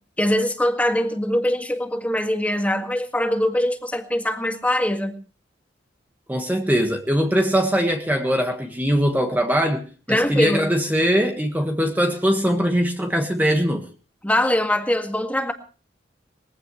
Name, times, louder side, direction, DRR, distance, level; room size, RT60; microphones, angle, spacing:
voice 1, 0.2-5.1 10.1-10.6 14.2-15.5, left 1 dB, 10° left, 5 dB, 1.9 m, -22 dB
voice 2, 6.3-13.9, equal, 10° right, 3 dB, 1.6 m, -21 dB
22.0 x 16.0 x 3.1 m, 0.37 s
head